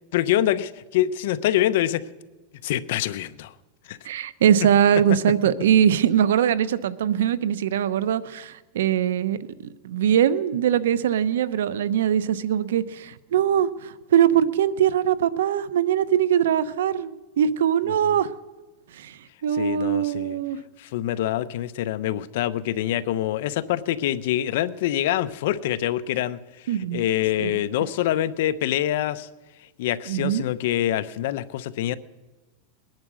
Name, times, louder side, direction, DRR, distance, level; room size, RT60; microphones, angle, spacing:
voice 1, 0.1-2.0 2.6-3.5 3.9-4.0 19.5-20.4 20.8-29.3 29.8-32.0, left 12 dB, 65° left, 14 dB, 0.8 m, -25 dB
voice 2, 4.0-9.4 9.8-18.3 18.9-20.6 26.7-27.0 27.4-27.5 30.1-30.4, right 9 dB, 85° right, 15 dB, 0.8 m, -22 dB
21.0 x 10.5 x 6.3 m, 1.2 s
supercardioid pair, 150°, 0 cm